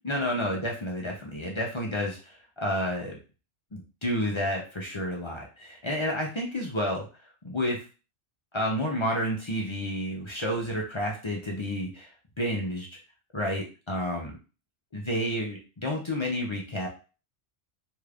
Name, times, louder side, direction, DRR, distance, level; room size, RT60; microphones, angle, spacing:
voice 1, 0.0-3.2 3.7-7.1 7.4-7.8 8.5-12.1 12.4-12.9 13.3-14.3 14.9-16.9, equal, 40° left, -1 dB, 0.4 m, -30 dB
2.8 x 2.4 x 3.3 m, 0.34 s
omnidirectional pair, 1.2 m